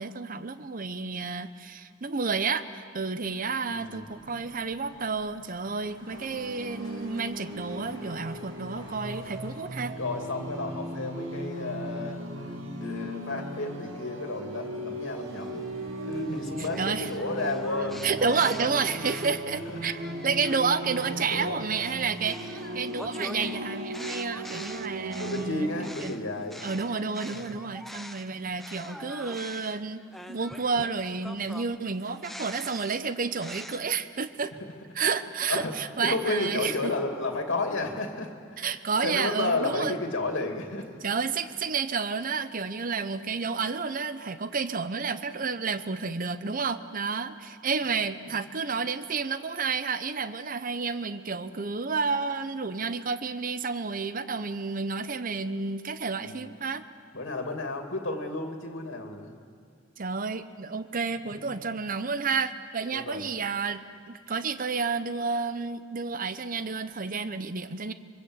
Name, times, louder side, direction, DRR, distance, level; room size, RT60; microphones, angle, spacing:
voice 1, 0.0-9.9 16.8-17.1 18.0-25.7 26.0-26.2 26.6-30.0 30.3-34.5 34.9-36.9 38.6-40.0 41.0-56.8 60.0-63.8 64.1-67.9, right 5 dB, 45° right, 12 dB, 0.8 m, -30 dB
sound 1, 3.3-9.5, left 1 dB, 25° left, 5.5 m, -54 dB
voice 2, 3.7-4.4 10.0-12.4 12.8-15.7 16.1-18.0 19.7-19.8 21.3-21.6 25.2-26.7 27.3-27.6 35.5-38.7 39.0-40.9 48.3-48.4 56.2-56.6 57.1-59.4 61.4-61.6 62.9-63.3, left 2 dB, 70° left, 3 dB, 2.8 m, -32 dB
sound 2, 6.1-25.9, right 1 dB, 80° right, 2.7 m, -37 dB
sound 3, 15.4-19.5 20.0-28.3 28.6-33.8, equal, ahead, 0.9 m, -44 dB
26.0 x 24.5 x 8.1 m, 2.1 s
head